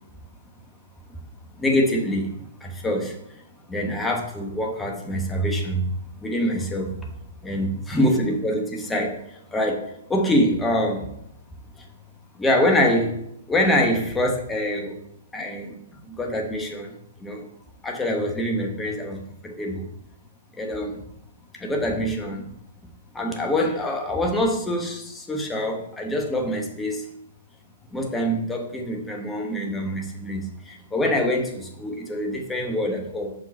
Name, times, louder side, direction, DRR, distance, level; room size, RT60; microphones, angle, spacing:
voice 1, 1.5-3.4 3.7-5.9 6.2-7.1 7.4-11.1 11.8-11.9 12.3-13.2 13.5-15.0 15.3-17.4 17.8-19.9 20.5-21.0 21.5-22.5 23.1-27.0 27.9-33.3, left 1 dB, 10° left, 1 dB, 1.3 m, -25 dB
5.9 x 5.1 x 4.4 m, 0.78 s
figure-of-eight pair, 120°, 0 cm